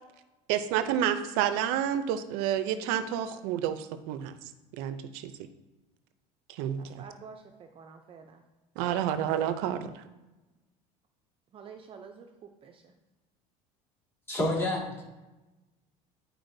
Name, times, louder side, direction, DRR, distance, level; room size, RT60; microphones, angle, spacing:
voice 1, 0.5-4.4 4.8-5.3 6.5-7.0 8.8-10.0, right 10 dB, 80° right, 11 dB, 0.5 m, -29 dB
voice 2, 6.8-8.4 11.5-12.9, right 6 dB, 35° right, 5 dB, 0.5 m, -49 dB
voice 3, 14.3-15.0, left 1 dB, 15° left, -2 dB, 1.9 m, -29 dB
10.5 x 4.4 x 2.6 m, 1.1 s
cardioid pair, 125°, 16 cm